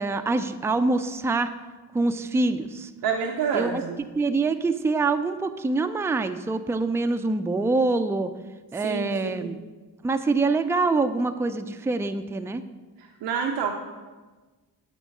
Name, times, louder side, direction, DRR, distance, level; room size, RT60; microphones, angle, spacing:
voice 1, 0.0-1.5 1.9-2.9 3.5-3.8 4.2-8.3 8.7-9.6 10.0-12.6, right 3 dB, 5° right, 9 dB, 0.4 m, -25 dB
voice 2, 3.0-4.0 8.8-9.5 13.0-13.7, right 6 dB, 85° right, 2 dB, 0.6 m, -28 dB
8.1 x 3.1 x 6.3 m, 1.3 s
cardioid pair, 50°, 40 cm